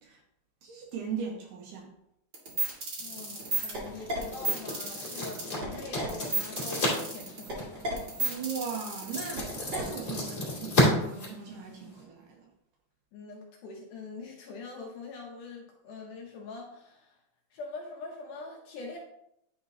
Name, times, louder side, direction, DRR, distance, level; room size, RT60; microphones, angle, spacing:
voice 1, 0.6-1.9 8.2-12.5, right 6 dB, 70° right, 0 dB, 2.2 m, -38 dB
sound 1, 2.3-9.8, right 2 dB, 45° right, 1.5 m, -33 dB
voice 2, 3.0-7.9 13.1-17.1 17.5-19.0, left 3 dB, 70° left, 0 dB, 2.0 m, -43 dB
sound 2, 3.0-12.0, left 1 dB, 25° left, 2.2 m, -33 dB
10.5 x 4.3 x 2.7 m, 0.78 s
omnidirectional pair, 4.3 m